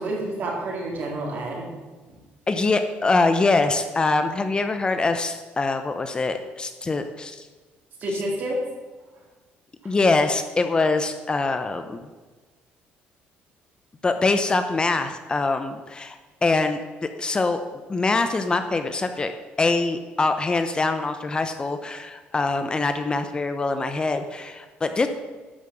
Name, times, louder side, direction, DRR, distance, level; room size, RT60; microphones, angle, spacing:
voice 1, 0.0-1.7 2.1-2.2 8.0-8.6 9.8-9.9, right 1 dB, 55° right, -2 dB, 3.9 m, -29 dB
voice 2, 2.5-7.5 9.8-12.0 14.0-16.8 17.2-17.6 17.9-19.3 19.6-25.1, left 3 dB, 25° left, 8 dB, 0.8 m, -24 dB
11.5 x 5.8 x 7.7 m, 1.3 s
cardioid pair, 115°, 4 cm